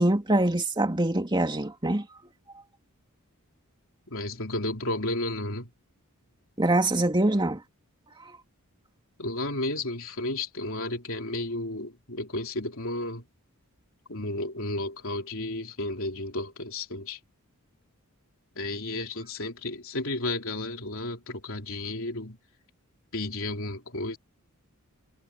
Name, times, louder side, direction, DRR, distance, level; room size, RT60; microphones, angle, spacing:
voice 1, 0.0-2.0 6.6-7.6, right 1 dB, 20° right, 2.5 m, -24 dB
voice 2, 4.1-5.7 9.2-13.2 14.1-17.2 18.6-22.4 23.1-24.2, left 2 dB, 65° left, 3.9 m, -32 dB
head